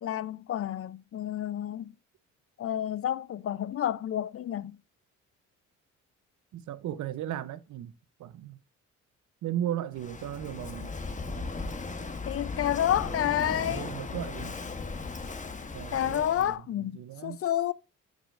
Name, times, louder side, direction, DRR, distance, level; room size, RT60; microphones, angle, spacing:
voice 1, 0.0-1.9 2.6-4.8 12.3-13.9 15.9-16.9 17.2-17.7, left 11 dB, 50° left, 0.5 m, -29 dB
voice 2, 6.5-7.9 8.2-8.6 9.4-10.9 13.4-14.6 15.7-17.4, right 11 dB, 75° right, 0.7 m, -36 dB
Walk footsteps / Wind / Waves surf, 9.9-16.6, left 3 dB, 25° left, 1.1 m, -37 dB
10.0 x 4.9 x 2.5 m
cardioid pair, 90°, 30 cm